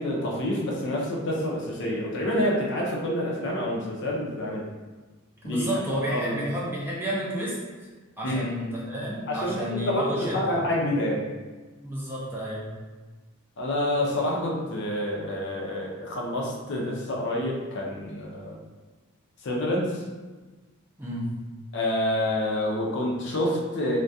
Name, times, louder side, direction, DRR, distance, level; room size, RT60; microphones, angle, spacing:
voice 1, 0.0-4.6 5.4-5.7 5.9-6.5 8.2-8.5 9.3-11.2 13.6-18.6 19.4-20.0 21.7-24.0, left 1 dB, 55° left, -2 dB, 0.4 m, -28 dB
voice 2, 5.4-7.5 8.2-10.6 11.8-12.7 21.0-21.3, right 1 dB, 10° right, -7 dB, 0.5 m, -31 dB
2.2 x 2.2 x 2.6 m, 1.3 s
head